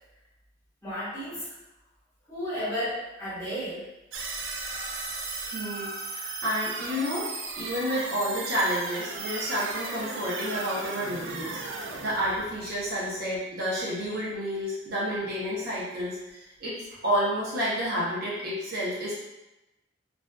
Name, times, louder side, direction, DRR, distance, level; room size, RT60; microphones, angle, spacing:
voice 1, 0.8-1.5 2.3-3.8, equal, 15° left, -12 dB, 1.3 m, -33 dB
sound 1, 4.1-13.4, right 3 dB, 85° right, 0.4 m, -36 dB
voice 2, 5.4-7.2 7.6-19.1, equal, 55° right, -8 dB, 0.7 m, -30 dB
2.4 x 2.3 x 2.2 m, 0.98 s
head